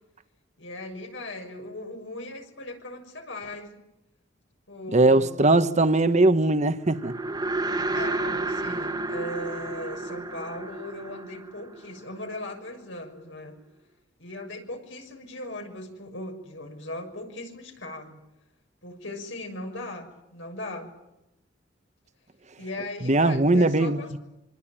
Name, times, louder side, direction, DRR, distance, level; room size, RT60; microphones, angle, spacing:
voice 1, 0.6-3.8 4.7-5.3 7.9-13.6 14.2-18.2 18.8-20.9 22.6-24.2, left 1 dB, 85° left, 6.6 m, -38 dB
voice 2, 4.9-7.1 23.0-24.0, right 2 dB, 40° right, 1.3 m, -20 dB
sound 1, 6.9-12.3, right 2 dB, 20° right, 1.6 m, -31 dB
26.0 x 25.0 x 9.0 m
head